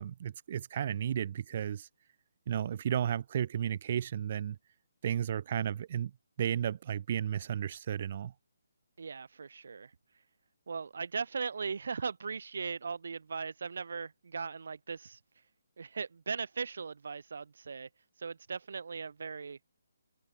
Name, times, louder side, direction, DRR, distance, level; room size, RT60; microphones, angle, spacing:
voice 1, 0.0-1.9 2.5-4.6 5.0-6.1 6.4-8.3, right 9 dB, 35° right, 3.5 m, -33 dB
voice 2, 9.0-9.9 10.7-15.2 15.8-17.9 18.2-19.6, right 5 dB, 60° right, 1.7 m, -38 dB
hypercardioid pair, 170°, 0 cm